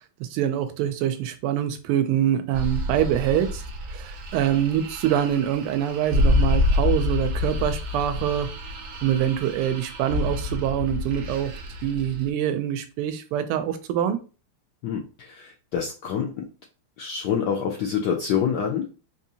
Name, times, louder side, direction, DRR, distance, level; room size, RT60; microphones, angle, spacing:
voice 1, 0.2-3.6 3.9-8.5 9.0-11.5 11.8-14.2, right 10 dB, 90° right, 1.5 m, -25 dB
sound 1, 2.5-12.3, left 2 dB, 70° right, 0.7 m, -27 dB
voice 2, 14.8-16.5 17.0-18.9, left 7 dB, 80° left, 0.9 m, -27 dB
4.0 x 2.6 x 2.8 m
omnidirectional pair, 2.4 m